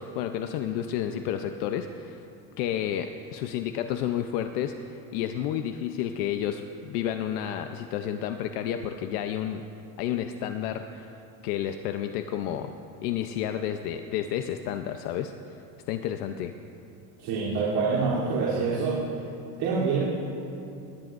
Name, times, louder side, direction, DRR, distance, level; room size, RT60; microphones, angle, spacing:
voice 1, 0.0-2.2 2.6-9.6 10.0-11.1 11.4-12.7 13.0-15.3 15.9-16.5, left 10 dB, 80° left, 6 dB, 0.8 m, -31 dB
voice 2, 17.2-19.0 19.6-20.0, right 4 dB, 50° right, -9 dB, 3.3 m, -26 dB
21.5 x 17.5 x 2.6 m, 2.8 s
cardioid pair, 180°, 46 cm